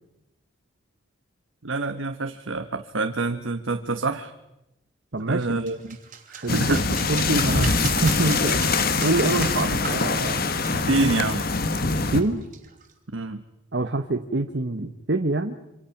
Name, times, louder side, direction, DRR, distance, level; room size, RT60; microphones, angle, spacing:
voice 1, 1.6-4.3 5.3-6.0 6.3-6.8 10.9-11.4 13.1-13.4, right 3 dB, 80° right, 7 dB, 1.2 m, -26 dB
voice 2, 5.1-5.6 6.4-6.8 7.1-10.4 12.1-12.4 13.7-15.5, right 2 dB, 55° right, 6 dB, 1.2 m, -25 dB
sound 1, 5.4-12.9, right 6 dB, 40° right, 3.0 m, -38 dB
sound 2, 6.5-12.2, left 4 dB, 50° left, 1.5 m, -24 dB
27.0 x 26.0 x 5.9 m, 0.93 s
head